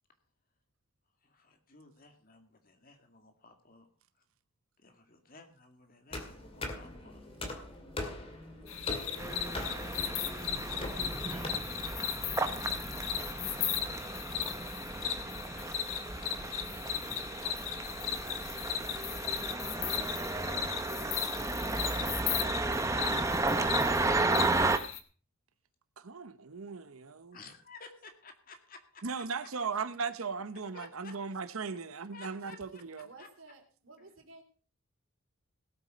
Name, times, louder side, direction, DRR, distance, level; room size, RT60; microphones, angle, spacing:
voice 1, 1.2-3.9 4.8-7.3 9.1-11.6 27.3-29.2 30.7-31.1 32.1-32.8 33.2-33.3, left 3 dB, 45° left, 2.1 m, -55 dB
sound 1, 6.1-11.5, left 2 dB, 25° left, 2.3 m, -41 dB
sound 2, 8.7-25.0, left 10 dB, 75° left, 1.4 m, -37 dB
sound 3, 9.2-24.8, right 2 dB, 15° right, 0.8 m, -33 dB
voice 2, 26.0-27.4 29.0-33.1, right 5 dB, 90° right, 0.9 m, -37 dB
voice 3, 33.0-34.4, right 3 dB, 75° right, 3.2 m, -54 dB
17.5 x 8.4 x 5.1 m
head